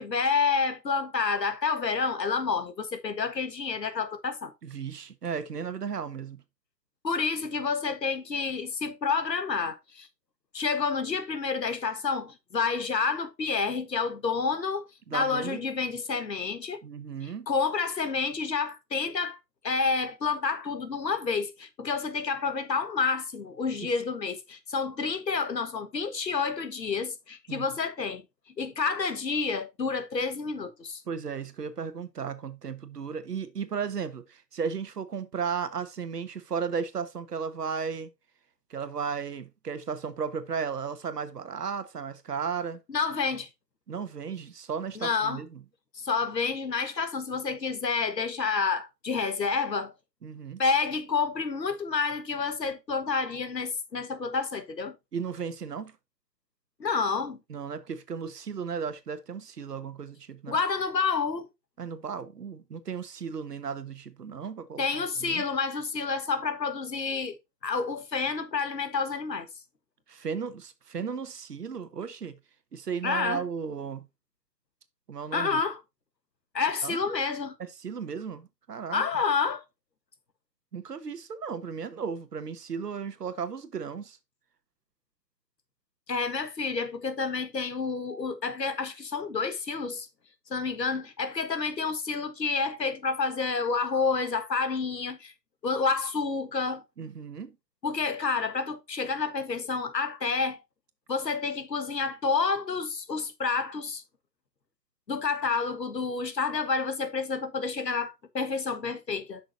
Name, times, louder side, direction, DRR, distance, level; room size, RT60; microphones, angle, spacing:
voice 1, 0.0-4.5 7.0-10.1 10.5-16.8 17.5-19.4 19.6-28.2 28.6-31.0 42.9-43.5 45.0-45.4 46.0-49.9 50.6-55.0 56.8-57.4 60.5-61.5 64.8-67.4 67.6-69.5 73.0-73.4 75.3-75.8 76.5-77.6 78.9-79.6 86.1-90.1 90.5-95.3 95.6-96.8 97.8-100.6 101.1-104.0 105.1-109.4, left 5 dB, 80° left, 1.6 m, -29 dB
voice 2, 4.6-6.4 15.1-15.6 16.8-17.5 23.8-23.9 27.5-27.7 31.1-38.1 38.7-42.8 43.9-45.6 50.2-50.6 55.1-55.9 57.5-60.6 61.8-64.8 65.2-65.4 70.1-72.4 72.7-74.0 75.1-75.6 76.8-77.1 77.8-79.0 80.7-84.2 97.0-97.5, right 6 dB, 70° right, 1.3 m, -35 dB
9.0 x 6.2 x 2.6 m
figure-of-eight pair, 150°, 50 cm